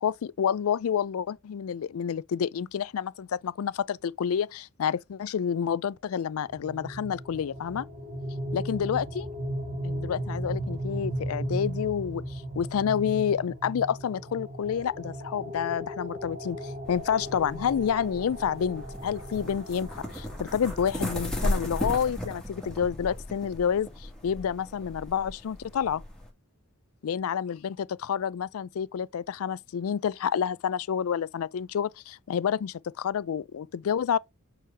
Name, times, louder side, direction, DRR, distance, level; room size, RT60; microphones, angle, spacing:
voice 1, 0.0-7.9 8.5-9.2 9.8-26.0 27.0-34.2, left 8 dB, 70° left, 0.4 m, -29 dB
sound 1, 6.5-21.4, right 1 dB, 40° right, 1.3 m, -36 dB
sound 2, 16.8-26.3, left 1 dB, 5° left, 1.7 m, -36 dB
6.1 x 4.7 x 3.4 m
head